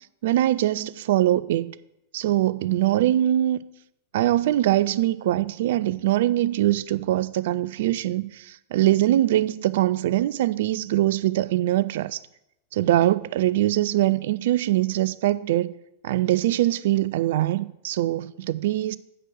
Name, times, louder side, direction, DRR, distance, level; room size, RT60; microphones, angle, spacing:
voice 1, 0.2-1.7 2.1-3.6 4.1-12.2 12.7-15.7 16.0-19.0, right 14 dB, 55° right, 0.4 m, -22 dB
9.0 x 6.1 x 6.3 m
figure-of-eight pair, 90°, 0 cm